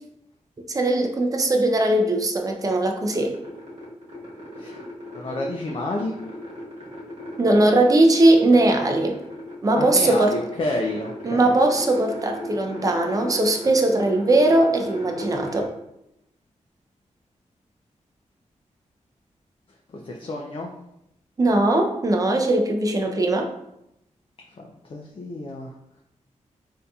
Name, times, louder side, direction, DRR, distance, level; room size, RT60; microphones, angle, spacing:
voice 1, 0.7-3.3 7.4-9.2 9.6-10.3 11.2-15.7 21.4-23.5, right 2 dB, 30° right, 3 dB, 0.4 m, -19 dB
sound 1, 3.0-15.7, left 1 dB, 60° right, 1.2 m, -37 dB
voice 2, 5.1-6.1 9.8-11.6 19.9-20.7 24.6-25.7, left 2 dB, 45° left, 0 dB, 0.4 m, -30 dB
3.9 x 2.7 x 2.3 m, 0.82 s
wide cardioid pair, 90°, 13 cm